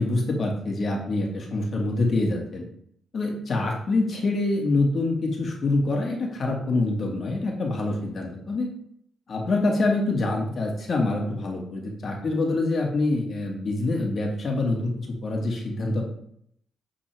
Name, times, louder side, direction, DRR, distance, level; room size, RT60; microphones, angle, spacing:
voice 1, 0.0-2.7 3.1-8.7 9.3-16.1, left 2 dB, 50° left, 0 dB, 2.1 m, -25 dB
9.1 x 4.2 x 3.5 m, 0.69 s
cardioid pair, 85°, 0 cm